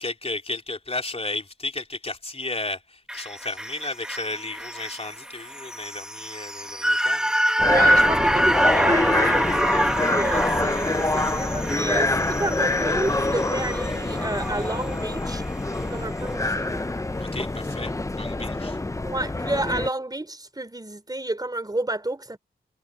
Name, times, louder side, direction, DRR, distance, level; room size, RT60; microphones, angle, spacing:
voice 1, 0.0-7.3 17.2-18.8, left 2 dB, 35° left, 3.5 m, -33 dB
sound 1, 3.1-15.4 15.8-15.9, equal, 5° right, 1.6 m, -26 dB
sound 2, 7.6-19.9, left 2 dB, 15° left, 0.8 m, -26 dB
voice 2, 7.7-15.4 15.8-16.8 18.4-18.5 19.0-22.4, right 2 dB, 20° right, 4.2 m, -30 dB
cardioid pair, 65°, 18 cm